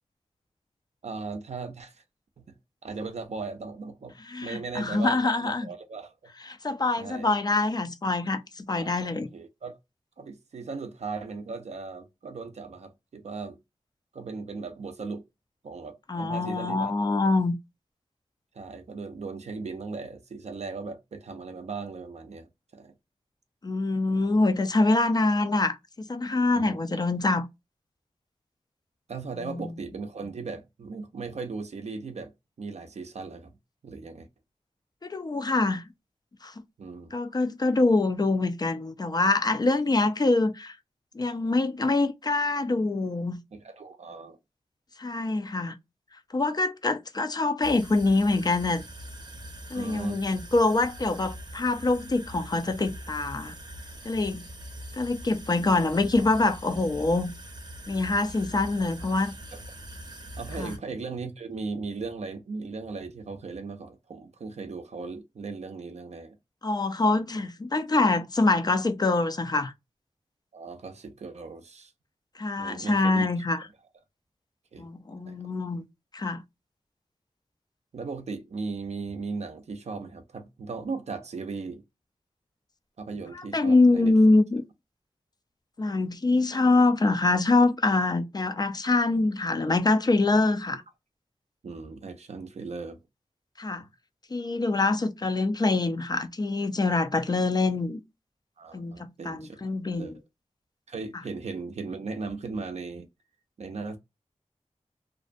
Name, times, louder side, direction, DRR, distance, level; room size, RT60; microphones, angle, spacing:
voice 1, 1.0-2.0 2.4-2.5 2.8-4.1 4.4-6.3 7.0-7.3 8.7-9.8 10.2-13.6 14.1-15.2 15.6-17.2 18.5-22.9 24.1-24.4 26.5-27.1 29.1-32.3 32.6-33.5 33.8-34.3 36.8-37.1 43.5-44.4 49.7-50.2 58.8-58.9 59.5-59.6 60.4-66.4 70.5-71.9 72.6-73.3 74.7-75.4 77.9-81.8 83.0-84.1 91.6-93.0 93.8-93.9 98.6-99.6 99.8-100.2 100.9-103.1 103.6-104.0, right 4 dB, 65° right, 0.4 m, -37 dB
voice 2, 4.3-5.7 6.6-9.3 16.1-17.6 23.6-27.5 29.4-29.7 35.0-35.9 36.4-36.5 37.1-40.8 41.1-43.4 45.0-45.7 46.3-48.8 49.7-53.6 54.0-54.4 54.9-57.3 57.9-59.3 60.6-60.7 66.6-69.7 72.4-73.6 74.8-75.8 76.1-76.4 83.3-84.6 85.8-90.8 93.6-93.8 94.3-98.0 98.7-98.9 99.2-100.2, left 2 dB, 35° left, 0.4 m, -25 dB
sound 1, 47.6-60.8, equal, 35° right, 0.7 m, -42 dB
2.5 x 2.1 x 2.4 m
wide cardioid pair, 70°, 12 cm